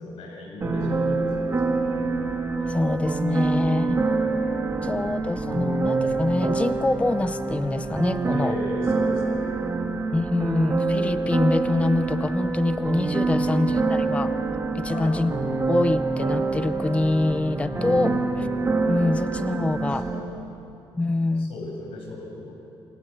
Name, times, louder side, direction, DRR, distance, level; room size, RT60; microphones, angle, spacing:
voice 1, 0.0-2.3 4.0-4.2 4.5-5.8 8.3-10.2 13.3-13.8 14.9-15.2 17.7-18.4 19.8-20.5 21.2-22.5, left 2 dB, 85° left, 0 dB, 7.7 m, -37 dB
sound 1, 0.6-20.2, right 3 dB, 30° right, 2.4 m, -26 dB
voice 2, 2.7-4.0 4.8-8.5 10.1-14.3 14.7-15.3 15.7-18.1 18.9-20.1 20.9-21.5, left 2 dB, 15° left, 12 dB, 0.6 m, -25 dB
27.5 x 27.5 x 7.4 m, 2.8 s
cardioid pair, 120°, 9 cm